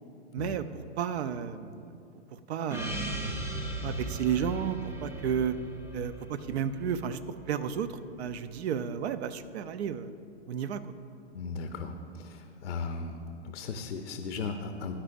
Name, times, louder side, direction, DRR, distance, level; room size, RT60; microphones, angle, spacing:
voice 1, 0.3-2.0 2.3-3.5 3.8-5.6 5.9-7.2 7.5-10.1 10.5-10.8, right 8 dB, 70° right, 12 dB, 0.6 m, -32 dB
Gong, 2.7-7.5, right 1 dB, 5° right, 0.7 m, -42 dB
Explosion, 2.7-8.7 9.0-9.1, right 1 dB, 85° right, 1.2 m, -40 dB
voice 2, 11.3-13.1 13.5-15.0, left 4 dB, 85° left, 6 dB, 0.7 m, -36 dB
14.5 x 10.0 x 2.6 m, 2.5 s
hypercardioid pair, 115°, 34 cm